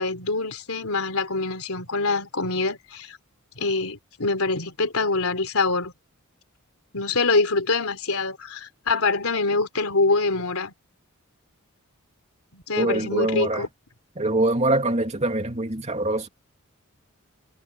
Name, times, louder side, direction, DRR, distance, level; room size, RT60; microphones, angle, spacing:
voice 1, 0.0-3.2 3.6-5.9 6.9-10.7 12.5-13.7, left 3 dB, 90° left, 3.6 m, -25 dB
voice 2, 12.8-13.6 14.2-16.3, right 2 dB, 30° right, 2.7 m, -24 dB
head